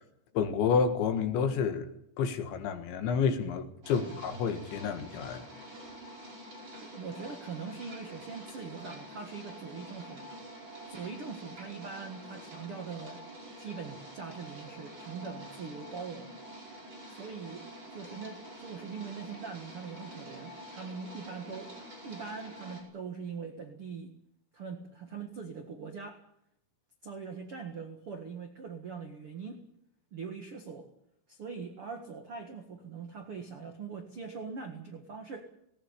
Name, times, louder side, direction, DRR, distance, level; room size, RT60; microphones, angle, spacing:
voice 1, 0.4-1.9 2.2-5.5, left 6 dB, 75° left, 3.9 m, -29 dB
sound 1, 3.8-22.8, right 1 dB, 25° right, 5.3 m, -47 dB
voice 2, 3.8-4.2 6.8-10.3 10.9-13.2 13.6-16.3 17.1-21.7 22.0-24.1 24.5-26.2 27.0-29.6 30.1-30.9 31.3-35.5, right 5 dB, 80° right, 1.2 m, -42 dB
18.5 x 18.0 x 9.9 m
omnidirectional pair, 5.5 m